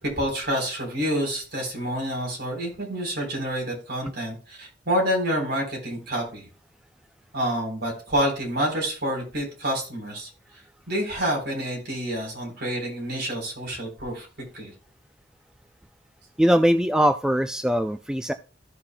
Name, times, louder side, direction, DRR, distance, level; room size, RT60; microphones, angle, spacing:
voice 1, 0.0-6.5 7.3-10.3 10.9-14.3 14.5-14.7, equal, 60° right, 3.8 m, -28 dB
voice 2, 16.4-18.3, equal, 5° right, 0.3 m, -21 dB
14.5 x 5.8 x 2.2 m
head